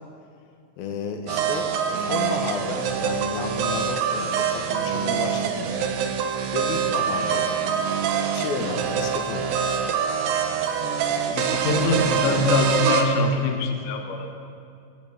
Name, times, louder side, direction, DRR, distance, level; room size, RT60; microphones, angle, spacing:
voice 1, 0.8-5.9 6.5-7.5 8.2-9.5 11.0-11.5 11.8-12.4, left 5 dB, 90° left, 4 dB, 3.0 m, -33 dB
sound 1, 1.3-13.0, right 7 dB, 80° right, 2.6 m, -25 dB
voice 2, 11.3-14.3, left 2 dB, 65° left, 4 dB, 1.8 m, -23 dB
21.0 x 15.5 x 3.5 m, 2.4 s
omnidirectional pair, 4.2 m